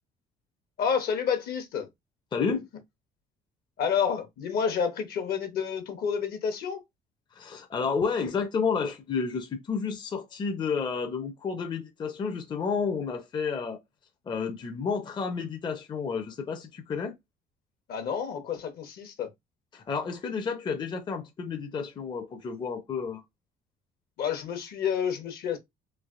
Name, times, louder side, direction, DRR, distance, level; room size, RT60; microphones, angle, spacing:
voice 1, 0.8-1.9 3.8-6.8 17.9-19.3 24.2-25.6, left 7 dB, 65° left, 0.9 m, -29 dB
voice 2, 2.3-2.7 7.3-13.8 14.3-17.1 19.7-23.2, left 5 dB, 25° left, 0.5 m, -31 dB
3.2 x 2.4 x 2.4 m
cardioid pair, 110°, 17 cm